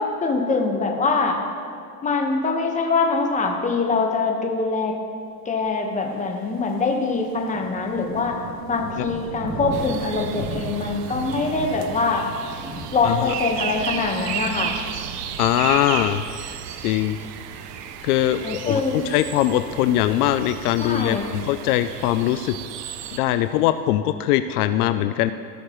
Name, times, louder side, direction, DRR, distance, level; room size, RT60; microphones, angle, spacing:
voice 1, 0.0-1.4 2.0-5.0 5.4-8.4 8.7-12.3 12.9-14.7 18.4-19.1 20.8-21.3, left 4 dB, 15° left, 2 dB, 1.3 m, -23 dB
sound 1, 6.2-23.7, right 1 dB, 65° right, 2.7 m, -39 dB
sound 2, 9.7-23.2, right 9 dB, 85° right, 0.8 m, -33 dB
voice 2, 13.0-13.3 15.4-16.2 16.8-17.2 18.0-22.6 23.1-25.3, left 13 dB, 70° left, 10 dB, 0.6 m, -21 dB
17.0 x 6.5 x 3.1 m, 2.3 s
supercardioid pair, 120°, 46 cm